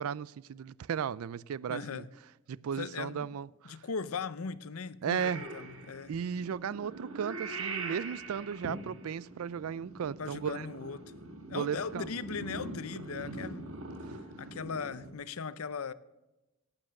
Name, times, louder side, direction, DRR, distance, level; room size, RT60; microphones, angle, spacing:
voice 1, 0.0-2.1 2.5-3.8 5.0-5.5 6.1-10.7 11.5-12.1 13.0-13.4 14.1-14.2, right 7 dB, 90° right, 0.4 m, -35 dB
voice 2, 1.7-2.1 2.8-3.3 3.6-6.1 10.2-11.0 11.5-13.7 14.4-15.9, left 5 dB, 90° left, 0.7 m, -38 dB
Purr / Meow, 5.2-15.1, right 3 dB, 65° right, 1.9 m, -43 dB
17.5 x 8.9 x 6.4 m
head